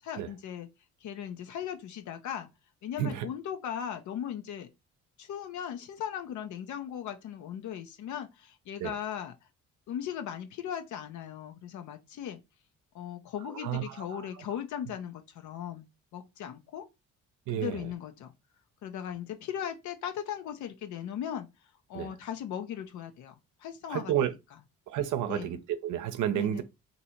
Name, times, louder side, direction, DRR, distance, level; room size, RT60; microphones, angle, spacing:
voice 1, 0.0-0.7 1.0-2.5 2.8-4.7 5.2-9.3 9.9-12.4 12.9-15.9 16.1-16.8 17.5-18.3 18.8-21.5 21.9-23.3 23.6-24.3 25.2-25.5 26.3-26.6, left 9 dB, 75° left, 0.6 m, -38 dB
voice 2, 13.6-14.3 17.5-17.9 21.9-22.1 23.9-24.3 24.9-26.6, right 11 dB, 80° right, 0.7 m, -31 dB
2.7 x 2.7 x 4.3 m
cardioid pair, 90°, 30 cm